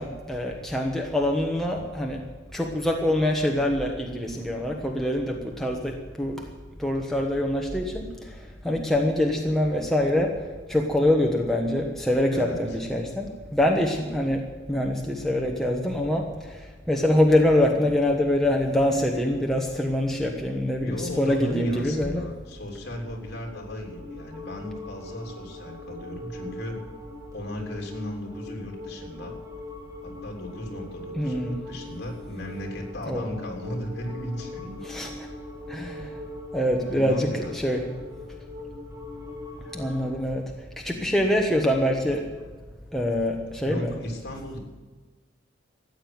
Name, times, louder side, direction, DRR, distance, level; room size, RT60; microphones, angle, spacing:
voice 1, 0.0-2.2 2.5-6.4 6.8-10.4 10.7-14.4 14.7-22.2 31.2-31.6 33.1-33.3 34.8-35.3 35.7-36.2 36.5-37.8 39.7-40.4 40.8-42.2 42.9-43.9, left 1 dB, ahead, 0 dB, 1.2 m, -25 dB
voice 2, 12.3-12.8 20.8-26.8 27.3-29.3 30.0-34.8 35.9-36.0 36.8-38.0 43.6-44.6, left 1 dB, 55° left, 1 dB, 3.4 m, -36 dB
sound 1, 22.6-40.2, left 2 dB, 15° right, 2.5 m, -42 dB
14.5 x 9.0 x 9.3 m, 1.3 s
head